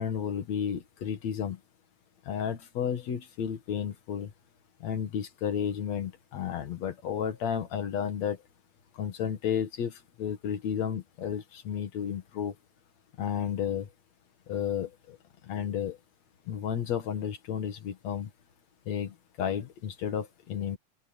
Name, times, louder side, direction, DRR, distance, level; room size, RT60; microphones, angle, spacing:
voice 1, 0.0-1.6 2.3-4.3 4.8-8.4 8.9-12.6 13.2-13.9 14.5-15.2 15.4-16.0 16.5-18.3 18.9-20.8, left 8 dB, 60° left, 2.9 m, -32 dB
open air
omnidirectional pair, 3.6 m